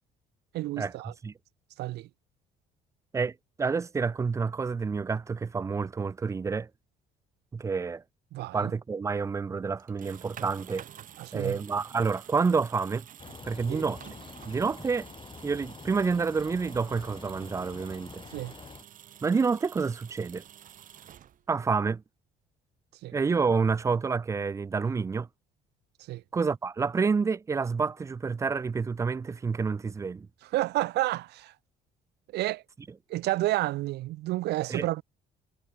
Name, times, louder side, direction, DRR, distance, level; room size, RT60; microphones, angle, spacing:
voice 1, 0.5-1.1 1.8-2.1 8.3-8.7 11.2-11.6 13.7-13.8 18.3-18.5 23.0-23.1 26.1-26.2 30.5-31.5 32.3-32.6 33.1-35.0, right 17 dB, 80° right, 1.3 m, -30 dB
voice 2, 3.1-6.7 7.5-8.0 8.5-10.8 11.3-13.1 13.4-14.0 14.4-15.1 15.4-18.2 19.2-20.4 21.5-22.0 23.1-25.3 26.3-30.3 34.7-34.9, right 5 dB, 20° right, 0.3 m, -28 dB
sound 1, 9.8-21.7, right 10 dB, 50° right, 1.7 m, -50 dB
sound 2, 13.2-18.8, left 5 dB, 30° left, 5.5 m, -47 dB
cardioid pair, 110°, 17 cm